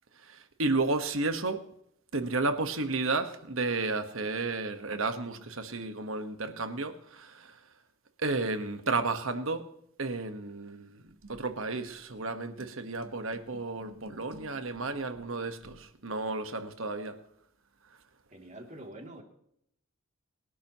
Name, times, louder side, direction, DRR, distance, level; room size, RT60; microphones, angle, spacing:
voice 1, 0.2-1.6 2.1-7.5 8.2-9.6 10.0-11.0 11.3-17.1, right 3 dB, 70° right, 8 dB, 1.5 m, -32 dB
voice 2, 18.3-19.2, right 1 dB, 35° right, 2 dB, 2.9 m, -46 dB
24.0 x 11.5 x 3.1 m, 0.71 s
head